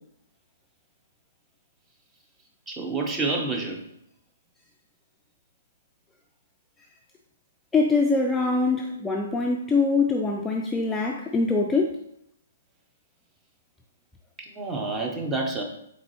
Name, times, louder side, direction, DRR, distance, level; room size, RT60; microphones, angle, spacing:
voice 1, 2.7-3.8 14.4-15.6, right 3 dB, 15° right, 1 dB, 0.7 m, -28 dB
voice 2, 7.7-12.0, left 3 dB, 10° left, 0 dB, 0.3 m, -23 dB
3.9 x 3.9 x 3.0 m, 0.74 s
hypercardioid pair, 130°, 0 cm